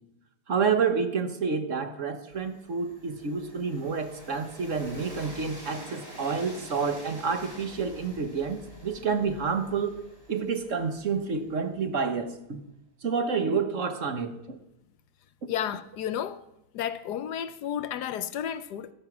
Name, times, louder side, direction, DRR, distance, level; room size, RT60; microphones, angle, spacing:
voice 1, 0.5-10.0 10.3-12.6 13.0-14.6, right 5 dB, 50° right, 1.4 m, -29 dB
Train, 2.3-12.2, equal, 15° right, 3.1 m, -47 dB
voice 2, 15.5-16.4 16.7-18.9, left 9 dB, 75° left, 1.3 m, -32 dB
14.0 x 11.5 x 6.0 m
omnidirectional pair, 1.8 m